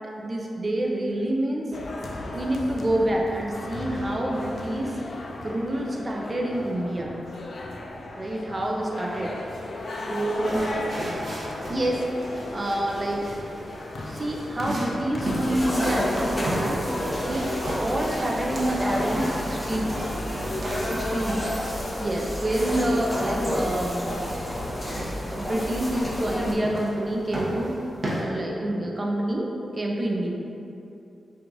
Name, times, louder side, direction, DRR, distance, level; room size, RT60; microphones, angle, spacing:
voice 1, 0.2-1.7 2.3-5.0 5.4-7.1 8.1-9.3 10.1-10.6 11.7-13.2 14.1-16.8 17.3-17.5 17.8-20.0 20.8-21.4 22.0-24.4 25.3-27.8 28.2-30.3, right 1 dB, 30° right, -1 dB, 0.4 m, -27 dB
sound 1, 1.7-15.7, left 2 dB, 55° left, 0.3 m, -36 dB
sound 2, 9.8-28.2, right 1 dB, 55° right, 0.8 m, -36 dB
sound 3, 15.2-26.5, left 1 dB, 15° left, 0.7 m, -30 dB
5.8 x 2.4 x 2.6 m, 2.7 s
wide cardioid pair, 115°, 0 cm